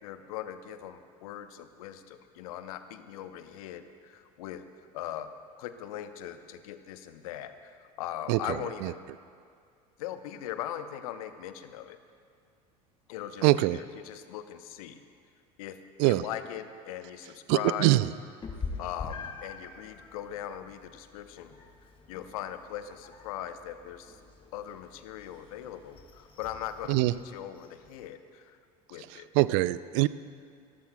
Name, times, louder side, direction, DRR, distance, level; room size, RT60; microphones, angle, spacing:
voice 1, 0.0-4.7 4.9-5.3 5.6-9.0 10.0-12.0 13.1-15.0 15.6-15.8 16.0-17.9 18.8-21.5 22.1-24.2 24.5-28.6 28.9-29.3, left 11 dB, 65° left, 10 dB, 0.8 m, -40 dB
voice 2, 13.4-13.8 16.0-16.2 17.5-18.1 26.9-27.1 29.3-30.1, right 19 dB, 55° right, 17 dB, 0.4 m, -23 dB
Meow, 18.4-28.1, left 4 dB, 25° left, 1.6 m, -45 dB
25.5 x 14.0 x 2.2 m, 2.2 s
figure-of-eight pair, 70°, 20 cm